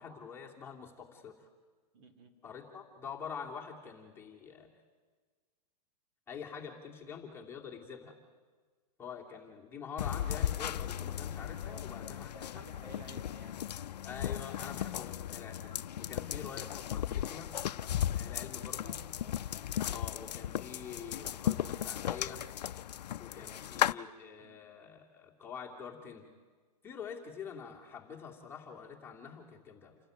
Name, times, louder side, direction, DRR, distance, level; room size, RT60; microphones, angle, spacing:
voice 1, 0.0-1.3 2.4-4.7 6.3-8.2 9.0-12.6 14.1-15.7 16.0-17.5 18.1-18.9 19.9-22.4 23.2-26.3 26.8-30.0, left 6 dB, 10° left, -2 dB, 2.7 m, -46 dB
voice 2, 1.9-2.4 11.7-13.7 16.2-16.4 18.3-19.5 23.4-23.6 24.4-24.6, right 2 dB, 35° right, 7 dB, 2.4 m, -56 dB
sound 1, 10.0-23.9, left 11 dB, 80° left, 0.6 m, -36 dB
29.0 x 13.0 x 9.5 m, 1.5 s
hypercardioid pair, 145°, 21 cm